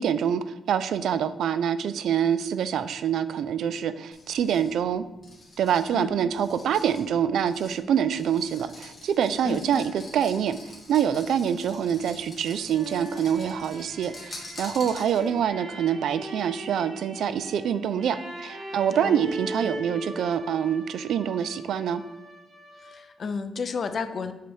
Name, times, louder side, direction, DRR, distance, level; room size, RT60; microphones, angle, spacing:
voice 1, 0.0-5.0 5.6-22.0, right 8 dB, 75° right, 13 dB, 0.4 m, -26 dB
sound 1, 4.1-15.5, left 2 dB, 25° left, 1.6 m, -46 dB
Sad Violin, 12.3-23.2, right 1 dB, 55° right, 1.4 m, -41 dB
voice 2, 19.0-19.5 22.8-24.3, left 5 dB, 45° left, 9 dB, 0.5 m, -32 dB
7.7 x 3.4 x 4.6 m, 0.99 s
cardioid pair, 130°, 0 cm